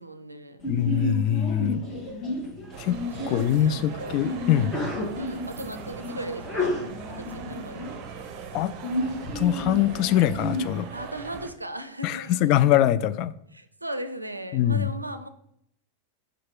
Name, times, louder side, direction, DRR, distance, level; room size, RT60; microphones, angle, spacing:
voice 1, 0.0-0.6 3.2-4.2 5.2-6.8 7.1-7.9 10.9-12.5 13.5-15.3, right 1 dB, 85° right, 11 dB, 0.4 m, -37 dB
Sneeze, 0.6-10.6, left 1 dB, 25° left, 1.9 m, -32 dB
voice 2, 0.7-1.8 2.8-3.0 3.3-4.7 8.5-8.7 9.4-10.9 12.0-13.3 14.5-14.9, left 11 dB, 40° left, 14 dB, 0.3 m, -23 dB
sound 1, 2.7-11.5, right 6 dB, 40° right, 0.7 m, -41 dB
5.7 x 4.6 x 3.7 m, 0.74 s
figure-of-eight pair, 90°, 0 cm